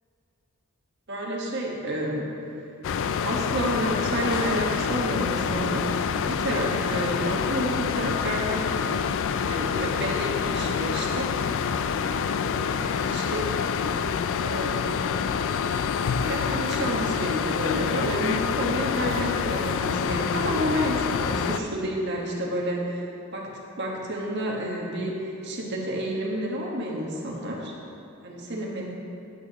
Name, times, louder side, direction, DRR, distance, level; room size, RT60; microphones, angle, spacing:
voice 1, 1.1-2.2 3.2-5.8 6.3-8.9 9.5-11.3 12.8-13.4 14.4-15.0 16.2-23.0 23.3-23.5 23.8-25.1 25.4-27.7 28.2-28.9, right 1 dB, 55° right, -2 dB, 1.5 m, -30 dB
sound 1, 2.8-21.6, left 6 dB, 60° left, 0.3 m, -27 dB
11.0 x 8.7 x 3.0 m, 2.9 s
head